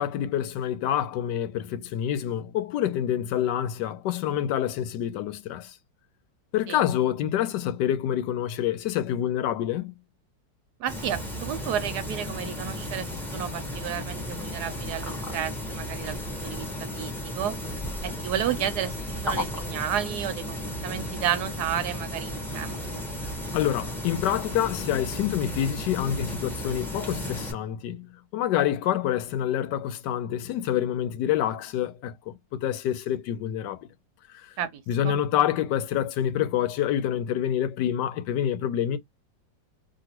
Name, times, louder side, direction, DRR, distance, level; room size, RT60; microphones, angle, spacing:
voice 1, 0.0-5.8 6.5-9.9 23.5-33.9 34.3-34.5 34.9-39.0, left 10 dB, 75° left, 1.2 m, -27 dB
voice 2, 10.8-16.7 16.9-17.6 18.0-23.0 34.6-35.1, right 10 dB, 70° right, 1.0 m, -32 dB
sound 1, 10.9-27.5, left 1 dB, ahead, 0.6 m, -34 dB
2.9 x 2.5 x 2.9 m
omnidirectional pair, 1.9 m